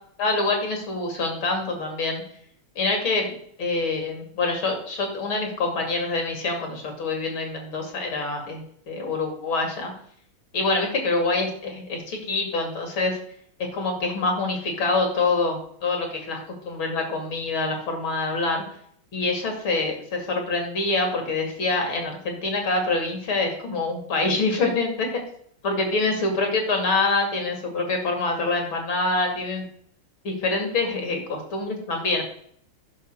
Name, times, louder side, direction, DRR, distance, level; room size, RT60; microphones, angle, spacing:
voice 1, 0.2-2.2 2.7-9.9 10.5-13.2 13.6-16.4 16.6-18.6 19.1-25.1 25.6-29.7 30.2-32.2, left 3 dB, 70° left, 3 dB, 3.2 m, -25 dB
11.0 x 5.9 x 6.6 m, 0.64 s
omnidirectional pair, 2.3 m